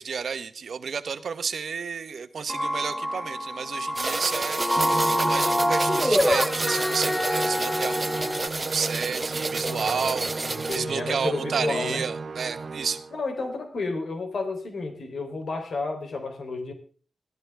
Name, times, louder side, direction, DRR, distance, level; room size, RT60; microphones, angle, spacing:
voice 1, 0.0-8.3 8.6-13.0, right 6 dB, 80° right, 11 dB, 1.1 m, -31 dB
sound 1, 2.5-8.5, left 1 dB, 10° left, 0.8 m, -26 dB
sound 2, 4.0-10.8, right 2 dB, 25° right, 0.7 m, -30 dB
Musical instrument, 4.8-13.2, right 4 dB, 55° right, 1.2 m, -35 dB
voice 2, 9.6-12.0 13.1-16.7, left 3 dB, 75° left, 4 dB, 3.4 m, -32 dB
22.0 x 14.0 x 3.5 m, 0.41 s
wide cardioid pair, 160°, 0 cm